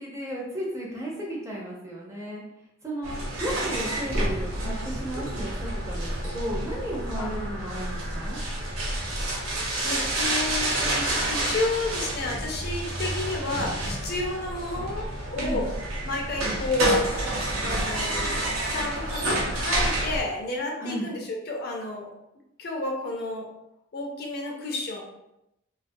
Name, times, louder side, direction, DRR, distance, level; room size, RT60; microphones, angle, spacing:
voice 1, 0.0-2.4 2.8-8.4 15.4-15.6 20.8-21.1, right 1 dB, 15° right, -3 dB, 0.4 m, -34 dB
sound 1, 3.0-20.2, right 1 dB, 85° right, 0.6 m, -29 dB
voice 2, 9.8-15.7 16.0-17.1 17.6-22.2 22.6-23.5 23.9-25.0, left 2 dB, 50° left, 1 dB, 0.4 m, -31 dB
2.3 x 2.2 x 2.5 m, 0.86 s
head